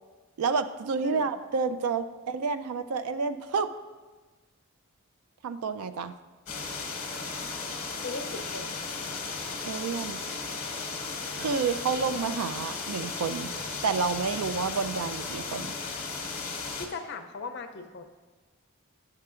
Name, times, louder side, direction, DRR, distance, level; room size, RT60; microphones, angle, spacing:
voice 1, 0.4-3.7 5.4-6.1 9.6-10.2 11.4-13.5 13.8-15.7, right 5 dB, 80° right, 10 dB, 0.4 m, -29 dB
sound 1, 6.5-16.9, left 4 dB, 30° left, 0.9 m, -35 dB
voice 2, 8.0-8.8 16.8-18.0, left 3 dB, 50° left, 7 dB, 0.5 m, -38 dB
10.5 x 6.6 x 2.4 m, 1.3 s
head